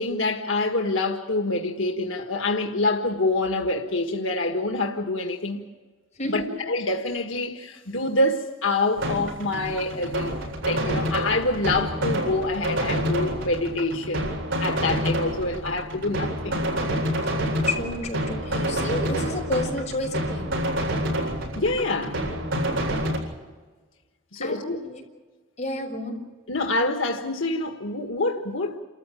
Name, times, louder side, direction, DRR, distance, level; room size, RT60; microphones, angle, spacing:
voice 1, 0.0-5.6 6.2-10.4 10.6-16.6 21.5-22.2 24.3-24.8 26.5-28.8, left 2 dB, 85° left, 4 dB, 1.6 m, -26 dB
voice 2, 6.2-6.6 17.2-17.3 17.6-20.5 24.4-25.0 25.6-26.2, left 2 dB, 35° left, -1 dB, 6.2 m, -30 dB
sound 1, 9.0-23.2, equal, 80° right, 7.8 m, -28 dB
29.0 x 14.5 x 9.0 m, 1.4 s
head